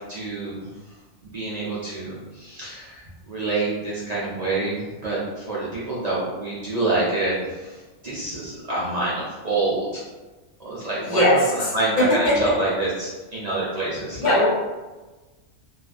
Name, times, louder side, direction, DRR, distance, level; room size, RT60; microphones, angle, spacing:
voice 1, 0.1-0.7 1.2-10.0 10.6-14.4, right 2 dB, 55° right, -8 dB, 0.4 m, -27 dB
voice 2, 11.0-11.4 12.0-12.4 14.2-14.5, left 1 dB, 45° left, -5 dB, 0.7 m, -18 dB
2.6 x 2.3 x 2.3 m, 1.2 s
omnidirectional pair, 1.4 m